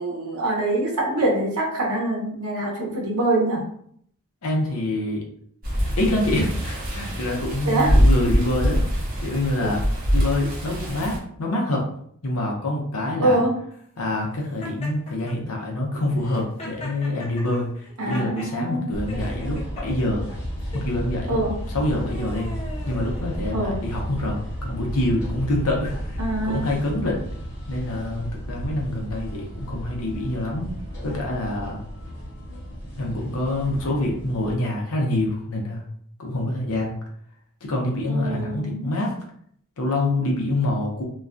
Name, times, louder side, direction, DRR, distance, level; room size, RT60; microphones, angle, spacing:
voice 1, 0.0-3.7 7.6-8.0 13.2-13.6 18.0-18.9 21.3-21.6 23.5-23.8 26.2-26.7 38.1-38.9, right 2 dB, 85° right, -1 dB, 0.7 m, -24 dB
voice 2, 4.4-5.2 6.0-8.8 9.2-9.8 10.1-11.8 12.2-13.4 14.0-20.3 20.7-21.4 21.7-22.6 22.9-27.2 27.7-30.7 31.0-31.8 33.0-35.8 36.2-36.9 37.6-39.1 39.8-41.0, left 1 dB, 75° left, 0 dB, 0.7 m, -26 dB
sound 1, 5.6-11.2, equal, 40° right, 0.7 m, -23 dB
Laughter, 14.6-15.3 16.2-18.5 19.1-19.8 20.6-20.9 21.6-23.8, left 1 dB, 30° left, 0.6 m, -40 dB
sound 2, 18.9-34.5, equal, 55° left, 1.0 m, -33 dB
2.3 x 2.2 x 2.5 m, 0.65 s
head